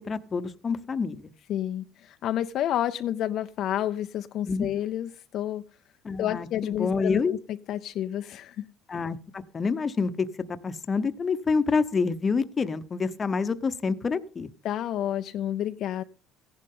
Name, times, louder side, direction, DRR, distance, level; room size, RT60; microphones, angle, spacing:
voice 1, 0.1-1.3 4.5-4.7 6.0-7.3 8.9-14.5, left 4 dB, 25° left, 0.8 m, -27 dB
voice 2, 1.5-5.6 6.2-7.2 7.5-8.7 14.6-16.0, left 11 dB, 55° left, 0.5 m, -30 dB
15.5 x 10.5 x 3.7 m
cardioid pair, 120°, 0 cm